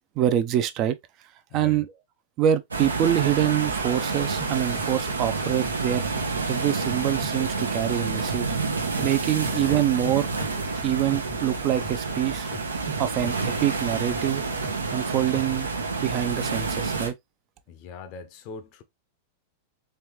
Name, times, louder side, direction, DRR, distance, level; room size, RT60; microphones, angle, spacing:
voice 1, 0.2-0.9 1.5-1.9 2.4-6.0 6.5-8.5 9.0-10.3 10.8-12.5 13.0-14.4 14.9-15.7 16.0-17.1, right 11 dB, 40° right, 0.5 m, -25 dB
voice 2, 1.5-1.8 9.4-9.8 17.7-18.8, left 5 dB, 45° left, 0.7 m, -41 dB
sound 1, 2.7-17.1, right 4 dB, 85° right, 0.7 m, -29 dB
sound 2, 4.4-6.5 6.8-9.3 9.6-12.1 12.4-15.0 15.3-15.6, left 2 dB, 5° left, 0.6 m, -42 dB
3.4 x 3.2 x 2.9 m
figure-of-eight pair, 95°, 0 cm